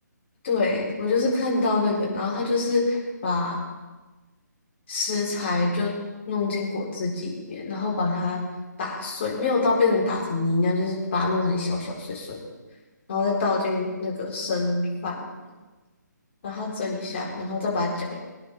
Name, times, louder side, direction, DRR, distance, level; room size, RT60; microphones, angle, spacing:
voice 1, 0.4-3.6 4.9-5.9 6.3-8.4 8.8-12.4 13.1-15.2 16.4-18.2, left 3 dB, 40° left, -4 dB, 4.4 m, -25 dB
23.5 x 9.8 x 3.7 m, 1.2 s
figure-of-eight pair, 145°, 10 cm